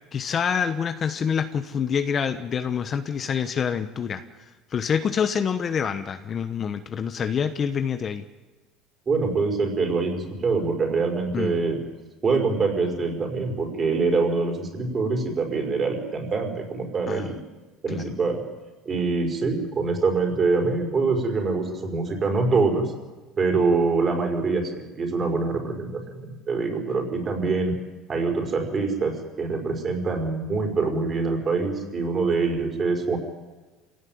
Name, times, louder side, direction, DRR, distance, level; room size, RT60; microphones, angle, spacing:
voice 1, 0.1-4.2 4.7-8.2 11.3-11.6 17.1-17.3 17.9-18.1, left 7 dB, 30° left, 9 dB, 1.1 m, -26 dB
voice 2, 9.1-11.8 12.2-17.4 17.8-18.4 18.9-22.9 23.4-27.7 28.1-33.2, right 4 dB, 30° right, 3 dB, 5.3 m, -24 dB
26.5 x 17.0 x 9.5 m, 1.3 s
cardioid pair, 140°, 0 cm